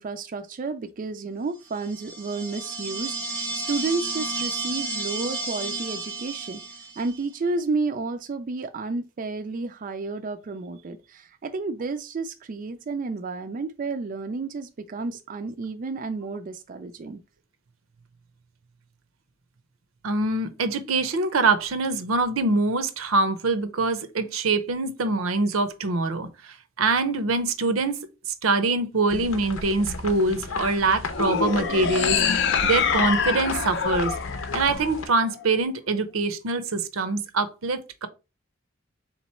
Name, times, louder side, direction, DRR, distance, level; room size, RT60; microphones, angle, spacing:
voice 1, 0.0-17.2, right 3 dB, 40° right, 0.3 m, -31 dB
sound 1, 1.8-7.2, right 3 dB, 10° left, 0.8 m, -32 dB
voice 2, 20.0-28.0 28.3-32.2 32.6-34.1 34.5-38.1, right 3 dB, 85° right, 0.7 m, -24 dB
sound 2, 29.1-35.0, left 3 dB, 85° left, 0.8 m, -34 dB
sound 3, 31.1-35.4, left 6 dB, 60° left, 0.5 m, -26 dB
3.8 x 3.0 x 4.2 m
head